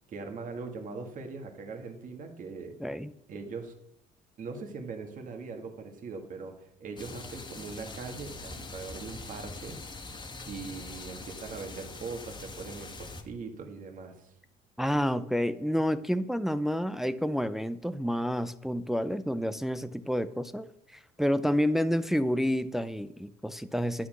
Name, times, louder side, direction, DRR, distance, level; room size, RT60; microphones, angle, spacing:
voice 1, 0.1-2.8 3.3-3.8 4.4-9.8 10.5-14.3, right 4 dB, 50° right, 4 dB, 2.1 m, -41 dB
voice 2, 2.8-3.1 14.8-24.1, equal, ahead, 11 dB, 0.5 m, -29 dB
sound 1, 7.0-13.2, left 3 dB, 25° left, 1.6 m, -43 dB
11.0 x 9.3 x 6.3 m, 0.74 s
cardioid pair, 110°, 17 cm